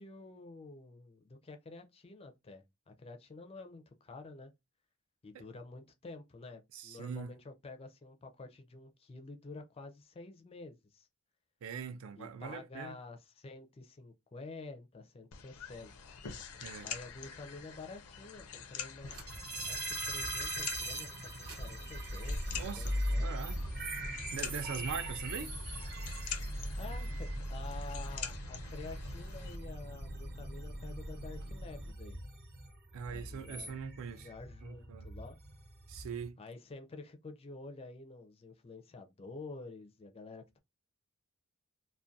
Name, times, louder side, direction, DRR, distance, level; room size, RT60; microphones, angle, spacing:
voice 1, 0.0-4.5 5.2-11.1 12.2-16.1 16.8-23.3 25.1-25.2 26.8-32.2 33.1-33.8 34.1-35.4 36.4-40.6, left 3 dB, 25° left, 0.4 m, -49 dB
voice 2, 6.7-7.3 11.6-13.0 16.6-16.9 22.5-23.6 24.3-25.5 32.9-34.3 34.6-35.1 35.9-36.4, right 6 dB, 65° right, 0.3 m, -42 dB
sound 1, 15.3-29.6, left 7 dB, 80° left, 0.5 m, -46 dB
sound 2, 19.1-19.6 20.0-20.1 21.3-31.9, equal, 85° right, 1.0 m, -40 dB
science fiction noise, 19.3-36.3, right 2 dB, 50° right, 0.7 m, -44 dB
2.3 x 2.1 x 2.5 m
head